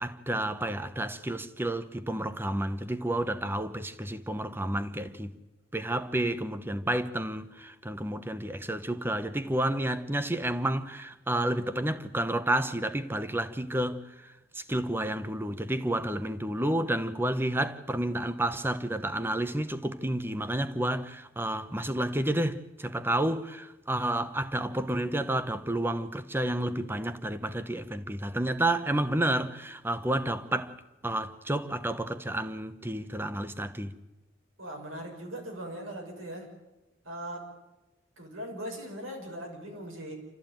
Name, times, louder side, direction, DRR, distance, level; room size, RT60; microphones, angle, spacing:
voice 1, 0.0-5.4 5.7-30.8 31.0-33.9, right 1 dB, 10° right, 1.0 m, -30 dB
voice 2, 34.6-36.5 37.0-37.5 38.2-40.2, right 1 dB, 90° right, 6.0 m, -39 dB
28.0 x 14.0 x 9.1 m
head